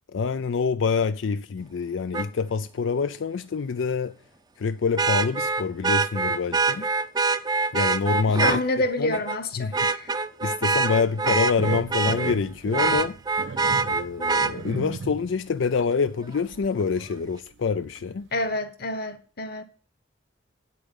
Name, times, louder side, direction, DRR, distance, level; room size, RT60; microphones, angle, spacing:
voice 1, 0.1-4.1 4.6-6.9 7.7-8.6 9.0-9.2 9.6-9.9 10.4-13.2 13.8-18.3, left 5 dB, 85° left, 0.4 m, -26 dB
Vehicle horn car horn honking, 2.1-2.3 5.0-8.6 9.1-9.4 9.7-12.4 12.7-14.5 16.3-16.4, right 4 dB, 20° right, 0.5 m, -24 dB
voice 2, 8.4-10.1 18.3-19.6, left 2 dB, 55° left, 1.3 m, -27 dB
sound 1, 11.3-15.4 15.8-15.9 16.4-17.1 17.5-17.6 18.0-18.1, right 4 dB, 70° right, 0.5 m, -35 dB
9.0 x 8.4 x 5.4 m
head